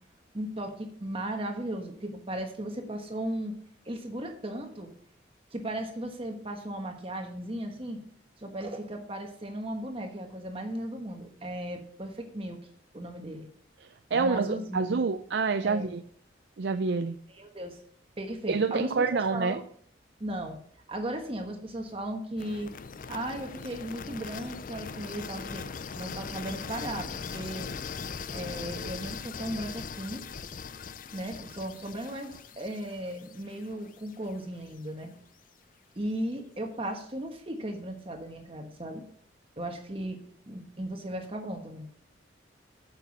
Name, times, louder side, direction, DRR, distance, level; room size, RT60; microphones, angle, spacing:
voice 1, 0.3-3.6 3.8-4.9 5.5-8.0 8.4-12.6 12.9-13.5 14.1-15.0 15.6-15.9 17.3-17.8 18.2-19.6 20.2-20.6 20.9-22.7 23.1-25.6 25.9-27.7 28.3-30.2 31.1-35.1 36.0-39.0 39.6-40.2 40.5-41.9, right 1 dB, 30° right, 3 dB, 1.2 m, -36 dB
voice 2, 13.8-16.0 16.6-17.2 18.5-19.6, right 4 dB, 65° right, 8 dB, 0.5 m, -27 dB
sound 1, 22.4-34.3, left 5 dB, 45° left, 0.5 m, -40 dB
8.0 x 7.0 x 5.9 m, 0.63 s
head